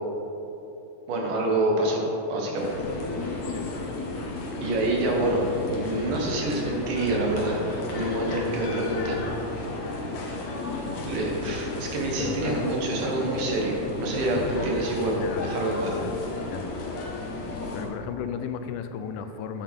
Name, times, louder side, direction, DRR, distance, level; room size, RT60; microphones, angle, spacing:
voice 1, 1.1-2.0 2.3-2.7 4.6-5.4 5.7-9.2 11.0-15.9, right 2 dB, 80° right, -1 dB, 3.0 m, -27 dB
sound 1, 2.6-17.9, left 2 dB, 60° left, 2.1 m, -33 dB
voice 2, 5.0-5.5 11.4-11.6 12.2-12.7 15.1-15.5 15.8-16.2 16.5-16.7 17.7-19.6, left 8 dB, 80° left, 8 dB, 2.1 m, -35 dB
9.7 x 8.6 x 3.7 m, 3.0 s
omnidirectional pair, 3.8 m